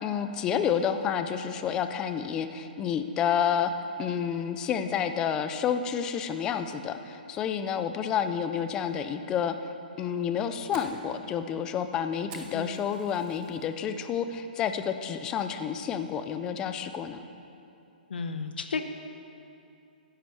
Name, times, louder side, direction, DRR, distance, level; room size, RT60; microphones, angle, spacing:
voice 1, 0.0-3.7 4.0-9.6 10.0-17.2, left 8 dB, 15° left, 9 dB, 0.4 m, -29 dB
Fire, 10.1-13.7 14.1-14.5 14.9-15.0 15.5-15.9, right 5 dB, 20° right, 0.9 m, -50 dB
voice 2, 18.1-18.8, left 5 dB, 80° left, 8 dB, 0.8 m, -33 dB
10.5 x 7.9 x 6.9 m, 2.7 s
hypercardioid pair, 165°, 5 cm